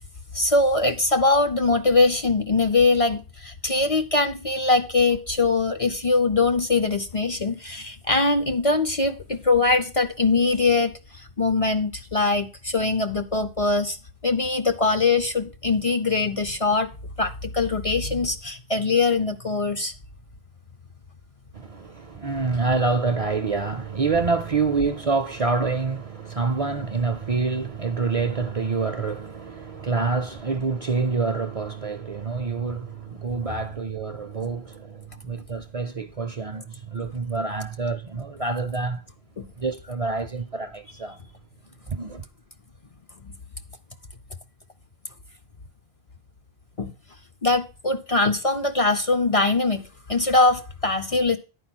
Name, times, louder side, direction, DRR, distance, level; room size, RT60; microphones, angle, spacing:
voice 1, 0.3-14.0 14.2-16.9 17.2-19.9 39.4-39.5 43.2-43.3 46.8-46.9 47.4-51.4, left 3 dB, 40° left, 0.6 m, -22 dB
voice 2, 21.5-39.0 39.6-41.2 41.9-42.2, right 4 dB, 45° right, 0.5 m, -27 dB
10.0 x 4.7 x 6.0 m
omnidirectional pair, 1.0 m